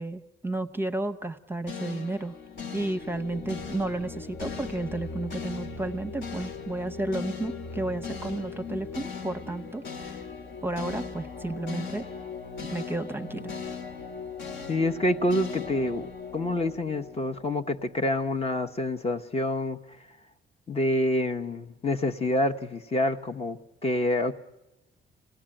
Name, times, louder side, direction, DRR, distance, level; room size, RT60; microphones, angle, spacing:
voice 1, 0.0-2.4 2.7-10.2 10.6-12.1 12.7-13.5, right 2 dB, 10° right, 8 dB, 0.9 m, -32 dB
sound 1, 1.7-17.9, left 5 dB, 60° left, 1.6 m, -38 dB
voice 2, 14.7-19.8 20.7-24.3, left 1 dB, 30° left, 7 dB, 0.9 m, -27 dB
25.5 x 18.0 x 8.9 m, 1.0 s
cardioid pair, 90°, 20 cm